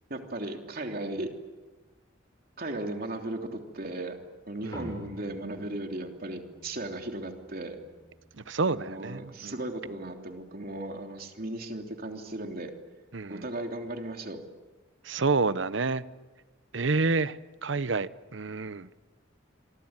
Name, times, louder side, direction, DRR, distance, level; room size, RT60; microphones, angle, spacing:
voice 1, 0.1-1.3 2.6-4.2 4.5-7.8 8.7-12.7 13.3-14.4, right 1 dB, 50° right, 3.3 m, -36 dB
sound 1, 4.7-9.5, equal, 20° left, 5.7 m, -48 dB
voice 2, 8.4-9.6 13.1-13.5 15.0-16.0 16.7-18.9, right 3 dB, 70° right, 0.9 m, -29 dB
26.5 x 24.5 x 9.0 m
head